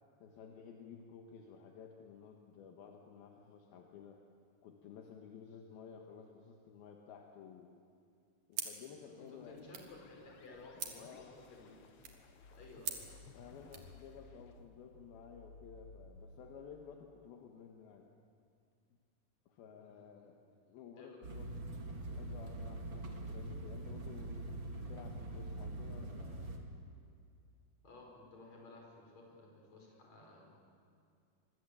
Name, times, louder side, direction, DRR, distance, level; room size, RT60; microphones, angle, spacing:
voice 1, 0.2-4.2 4.6-7.7 8.5-9.8 11.0-11.5 12.0-12.2 13.3-18.1 19.5-20.4 20.7-21.5 21.9-26.6, left 6 dB, 75° left, 2 dB, 3.3 m, -54 dB
sound 1, 8.5-13.9, right 7 dB, 60° right, 3.5 m, -47 dB
voice 2, 9.0-11.8 12.5-13.0 19.8-20.3 21.0-21.4 27.8-30.5, left 2 dB, 45° left, 0 dB, 6.1 m, -56 dB
sound 2, 9.4-16.2, left 4 dB, 60° left, 1.6 m, -58 dB
sound 3, 21.2-26.6, right 2 dB, 35° right, 2.5 m, -43 dB
26.5 x 23.0 x 8.5 m, 2.3 s
omnidirectional pair, 4.4 m